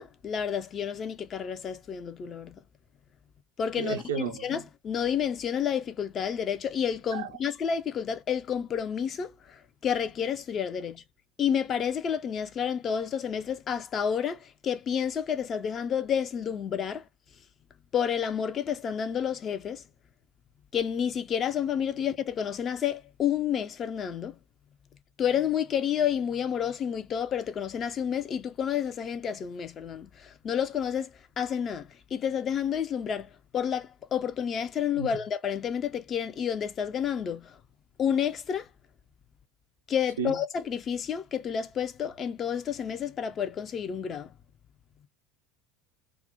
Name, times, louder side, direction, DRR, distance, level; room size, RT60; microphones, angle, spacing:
voice 1, 0.0-2.6 3.6-11.0 11.4-17.0 17.9-19.8 20.7-24.4 25.2-37.6 38.0-38.7 39.9-44.3, left 8 dB, 40° left, 0.4 m, -30 dB
voice 2, 3.8-4.5 7.1-7.3 35.0-35.1 40.2-40.4, right 7 dB, 85° right, 0.5 m, -32 dB
2.4 x 2.0 x 2.6 m
hypercardioid pair, 80°, 0 cm